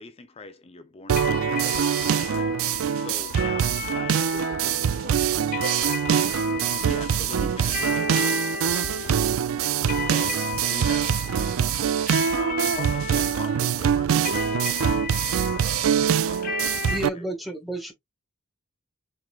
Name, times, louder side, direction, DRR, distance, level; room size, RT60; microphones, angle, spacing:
voice 1, 0.0-2.6 3.0-4.2 6.8-9.2 10.0-11.1 12.3-14.9 15.2-17.2, left 3 dB, 30° left, 0.6 m, -42 dB
sound 1, 1.1-17.1, right 8 dB, 90° right, 0.4 m, -24 dB
sound 2, 1.2-17.0, left 6 dB, 45° left, 1.3 m, -34 dB
voice 2, 3.9-6.9, right 3 dB, 50° right, 1.2 m, -46 dB
voice 3, 16.9-17.9, equal, ahead, 1.3 m, -31 dB
4.7 x 3.7 x 2.3 m
head